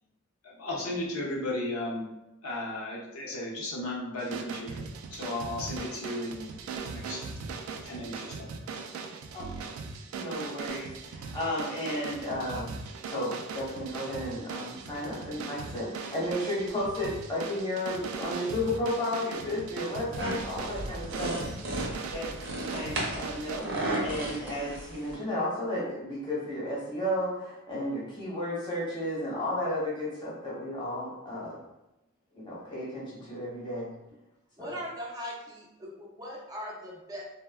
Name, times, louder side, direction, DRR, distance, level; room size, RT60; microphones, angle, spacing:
voice 1, 0.4-2.1 2.4-4.8 5.1-6.5 6.9-7.3 7.8-8.5 21.2-21.5, left 1 dB, 90° left, -3 dB, 0.7 m, -35 dB
sound 1, 4.2-23.6, right 5 dB, 85° right, 0.3 m, -40 dB
voice 2, 9.3-9.7 10.1-12.7 13.0-21.3 22.1-22.3 22.7-23.7 24.0-31.6 32.3-33.9 34.6-34.7, left 1 dB, 20° left, -6 dB, 0.9 m, -33 dB
sound 2, 20.1-25.2, right 1 dB, 60° right, 0.7 m, -34 dB
voice 3, 34.6-37.2, equal, 15° right, -3 dB, 0.4 m, -40 dB
3.4 x 2.1 x 2.2 m, 0.95 s
head